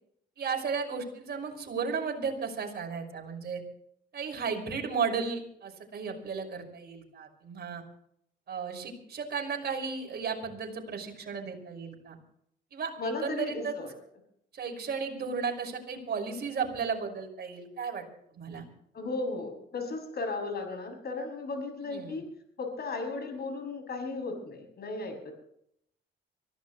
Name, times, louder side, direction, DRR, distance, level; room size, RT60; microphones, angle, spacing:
voice 1, 0.4-3.6 4.1-7.8 8.5-12.2 12.7-13.8 14.5-18.0 18.3-18.7 21.9-22.2, right 5 dB, 55° right, 2 dB, 5.6 m, -34 dB
voice 2, 13.0-13.9 18.9-22.2 22.6-25.4, left 3 dB, 55° left, 4 dB, 6.8 m, -35 dB
24.5 x 16.0 x 3.1 m, 0.70 s
cardioid pair, 90°, 20 cm